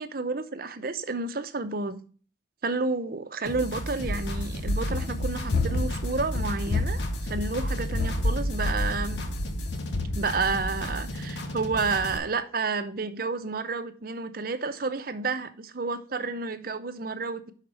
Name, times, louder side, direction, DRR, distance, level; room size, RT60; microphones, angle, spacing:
voice 1, 0.0-2.0 2.6-9.2 10.1-17.5, right 4 dB, 50° right, 0.7 m, -30 dB
sound 1, 3.4-12.2, equal, 70° left, 1.1 m, -35 dB
Run, 4.0-11.0, left 2 dB, 50° left, 0.6 m, -30 dB
5.7 x 4.7 x 6.3 m
head